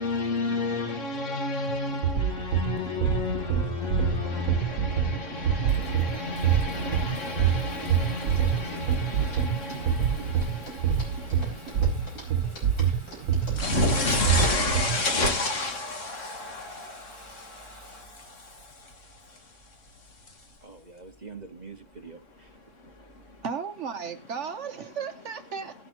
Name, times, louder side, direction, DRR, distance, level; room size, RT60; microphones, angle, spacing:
voice 1, 0.0-12.3 13.6-20.5 22.5-23.4, left 3 dB, 55° left, 2.0 m, -32 dB
sound 1, 1.7-15.3, right 8 dB, 80° right, 1.3 m, -26 dB
Water tap faucet / Bathtub (filling or washing) / Trickle dribble, 4.5-23.4, equal, 20° left, 3.1 m, -51 dB
sound 2, 8.4-15.3, left 1 dB, 85° left, 5.4 m, -47 dB
voice 2, 20.6-22.6, right 4 dB, 30° right, 1.1 m, -45 dB
voice 3, 23.4-25.7, right 6 dB, 55° right, 1.1 m, -34 dB
17.5 x 10.0 x 2.9 m
omnidirectional pair, 1.6 m